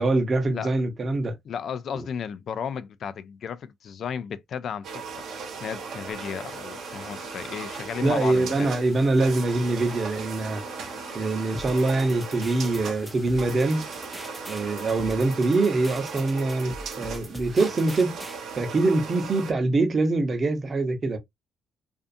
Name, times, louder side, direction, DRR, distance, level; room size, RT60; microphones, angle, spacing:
voice 1, 0.0-1.3 8.0-10.6 11.1-13.8 14.5-18.2 18.5-21.2, right 2 dB, 40° right, 0.8 m, -24 dB
voice 2, 1.4-5.2 5.6-8.7, left 7 dB, 60° left, 0.3 m, -34 dB
sound 1, 4.8-19.5, right 5 dB, 75° right, 0.9 m, -38 dB
sound 2, 6.1-15.1, left 3 dB, 35° left, 0.9 m, -48 dB
sound 3, 11.6-18.4, right 1 dB, 5° right, 0.5 m, -42 dB
2.5 x 2.4 x 2.5 m
cardioid pair, 90°, 0 cm